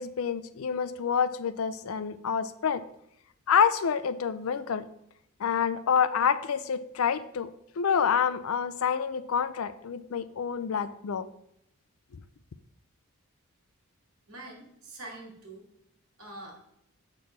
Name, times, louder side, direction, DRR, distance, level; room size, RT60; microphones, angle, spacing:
voice 1, 0.0-2.8 3.5-4.9 5.4-7.5 7.8-11.3, left 7 dB, 70° left, 14 dB, 0.4 m, -27 dB
voice 2, 14.3-15.6 16.2-16.6, right 2 dB, 75° right, 0 dB, 2.2 m, -44 dB
8.0 x 6.0 x 3.3 m, 0.76 s
head